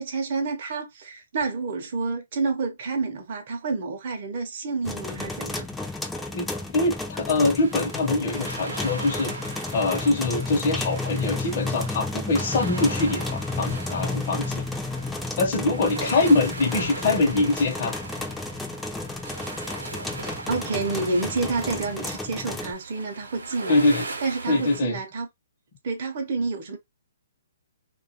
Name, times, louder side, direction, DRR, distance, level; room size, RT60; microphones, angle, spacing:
voice 1, 0.0-5.7 20.5-23.8 24.2-25.3 25.8-26.8, right 3 dB, 50° right, 0.6 m, -29 dB
sound 1, 4.8-22.7, left 2 dB, 5° left, 0.4 m, -32 dB
voice 2, 6.3-14.6 15.4-17.9 23.7-24.1 24.5-25.0, left 2 dB, 45° left, 0.7 m, -24 dB
sound 2, 7.5-24.8, right 3 dB, 85° right, 0.7 m, -39 dB
2.3 x 2.2 x 2.7 m
hypercardioid pair, 140°, 0 cm